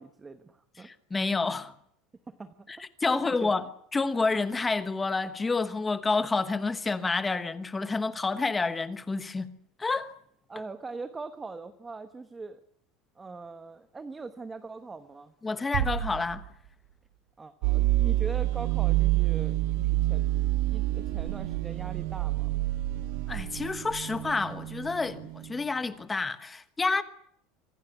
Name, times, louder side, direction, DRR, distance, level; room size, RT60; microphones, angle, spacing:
voice 1, 0.0-0.9 2.3-3.6 10.5-12.6 13.2-15.3 17.4-20.3 20.7-22.5, right 3 dB, 10° right, 1.1 m, -42 dB
voice 2, 0.8-1.7 2.7-3.6 3.9-9.5 9.8-10.1 15.4-16.5 23.3-27.0, left 3 dB, 10° left, 1.2 m, -29 dB
sound 1, 15.7-17.3, right 11 dB, 80° right, 4.6 m, -34 dB
sound 2, 17.6-25.6, right 16 dB, 65° right, 1.6 m, -28 dB
25.5 x 17.5 x 9.2 m
cardioid pair, 180°, 0 cm